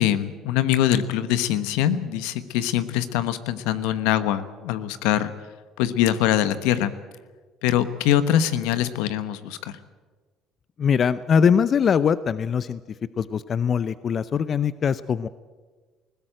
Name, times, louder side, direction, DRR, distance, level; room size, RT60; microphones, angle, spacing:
voice 1, 0.0-5.3 5.8-6.9 7.6-9.8, left 11 dB, 85° left, 13 dB, 1.1 m, -23 dB
voice 2, 10.8-15.3, left 7 dB, 45° left, 16 dB, 0.6 m, -22 dB
20.0 x 16.0 x 9.0 m, 1.4 s
supercardioid pair, 80°, 0 cm